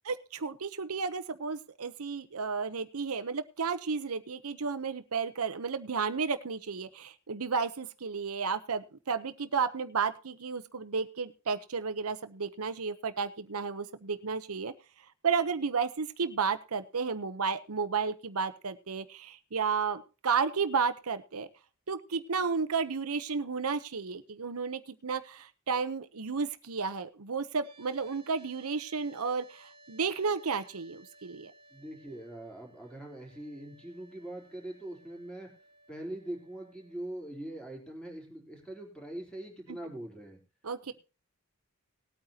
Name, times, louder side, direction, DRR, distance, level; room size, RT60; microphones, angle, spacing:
voice 1, 0.0-14.7 15.2-21.5 21.9-31.5 40.6-40.9, right 5 dB, 90° right, 11 dB, 0.9 m, -32 dB
sound 1, 27.6-37.7, right 2 dB, 25° right, 2.1 m, -59 dB
voice 2, 31.7-35.5 35.9-40.4, right 1 dB, 5° left, 0 dB, 3.7 m, -42 dB
19.5 x 9.0 x 2.9 m, 0.33 s
head